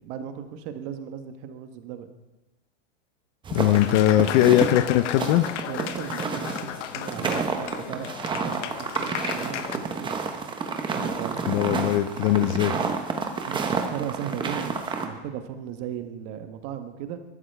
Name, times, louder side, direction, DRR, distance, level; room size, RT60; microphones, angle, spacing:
voice 1, 0.0-2.1 4.0-4.4 5.7-10.3 10.9-11.4 13.5-17.2, right 9 dB, 40° right, 8 dB, 1.2 m, -37 dB
voice 2, 3.5-5.5 11.5-12.8, left 13 dB, 40° left, 12 dB, 0.6 m, -20 dB
sound 1, 3.5-15.1, right 5 dB, 15° right, 0.9 m, -30 dB
Applause, 3.7-9.8, left 11 dB, 75° left, 0.9 m, -35 dB
14.5 x 12.5 x 3.4 m, 1.1 s
supercardioid pair, 145°, 36 cm